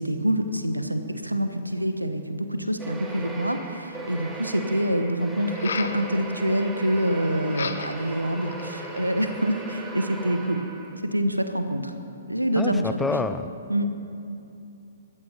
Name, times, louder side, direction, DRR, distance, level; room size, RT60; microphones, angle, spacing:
voice 1, 0.0-10.6 11.0-11.9 12.3-13.2 13.7-13.9, equal, 85° right, 8 dB, 1.2 m, -26 dB
sound 1, 2.8-11.1, right 2 dB, 10° right, 1.5 m, -38 dB
sound 2, 5.4-6.0 7.5-8.1 8.5-9.1, left 6 dB, 55° left, 0.9 m, -34 dB
voice 2, 12.6-13.4, left 3 dB, 5° left, 11 dB, 0.6 m, -27 dB
20.5 x 14.5 x 4.5 m, 2.7 s
figure-of-eight pair, 120°, 0 cm